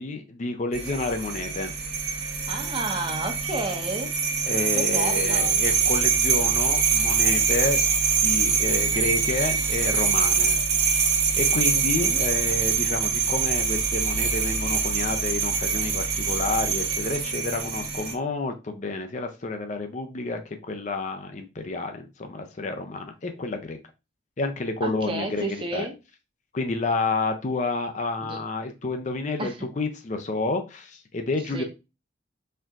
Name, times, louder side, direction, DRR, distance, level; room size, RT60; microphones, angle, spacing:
voice 1, 0.0-1.7 4.5-7.8 8.2-10.6 11.3-23.8 24.4-25.9 26.5-31.6, left 3 dB, 35° left, 6 dB, 0.5 m, -30 dB
sound 1, 0.7-18.1, right 6 dB, 55° right, 1.0 m, -24 dB
voice 2, 2.5-4.1 4.7-5.5 11.9-12.2 24.8-25.9 28.3-28.4 29.4-29.5 31.5-31.6, right 2 dB, 25° right, 3 dB, 0.8 m, -31 dB
4.4 x 3.6 x 2.4 m, 0.27 s
head